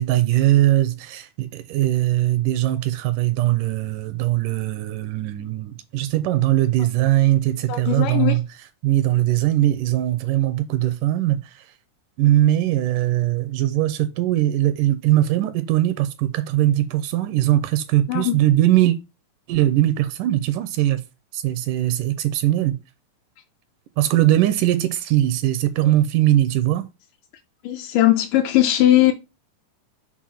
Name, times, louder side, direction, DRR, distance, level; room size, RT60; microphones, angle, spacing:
voice 1, 0.0-8.4 8.8-11.7 12.2-19.0 19.5-21.0 21.3-22.8 24.0-26.9, right 14 dB, 80° right, 2.1 m, -20 dB
voice 2, 7.7-8.4 18.1-18.4 27.6-29.1, left 14 dB, 85° left, 2.1 m, -18 dB
7.2 x 2.5 x 5.7 m
omnidirectional pair, 3.8 m